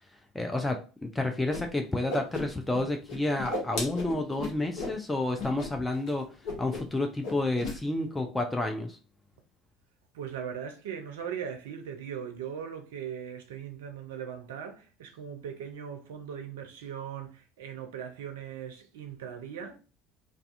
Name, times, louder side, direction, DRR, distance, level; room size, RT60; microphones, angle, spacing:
voice 1, 0.3-6.3 6.6-9.0, left 2 dB, 10° left, 0.4 m, -30 dB
Whoosh swoosh swish, 1.5-1.6 1.9-2.8 3.1-5.0 5.4-5.7 5.9-6.1 6.4-7.0 7.2-7.8, left 2 dB, 55° left, 0.7 m, -35 dB
voice 2, 10.1-19.8, right 8 dB, 70° right, 0.4 m, -39 dB
2.4 x 2.3 x 2.4 m
figure-of-eight pair, 65°, 0 cm